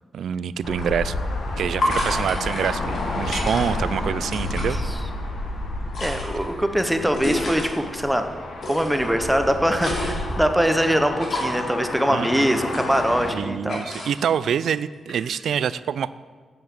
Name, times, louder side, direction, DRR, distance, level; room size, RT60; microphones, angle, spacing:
voice 1, 0.1-1.1 1.6-4.8 12.1-12.5 13.3-16.1, right 8 dB, 85° right, 17 dB, 0.3 m, -26 dB
sound 1, 0.6-13.3, left 2 dB, 80° left, 1.7 m, -30 dB
sound 2, 0.8-0.9 1.8-3.9 4.2-4.7 5.7-7.7 8.6-9.1 9.5-10.4 11.2-11.7 12.5-13.4 13.7-14.4 15.1-15.4, left 1 dB, 55° left, 2.7 m, -30 dB
voice 2, 6.0-8.2 8.7-13.8, equal, 5° right, 6 dB, 0.8 m, -22 dB
9.5 x 7.1 x 7.5 m, 1.5 s
wide cardioid pair, 155°, 0 cm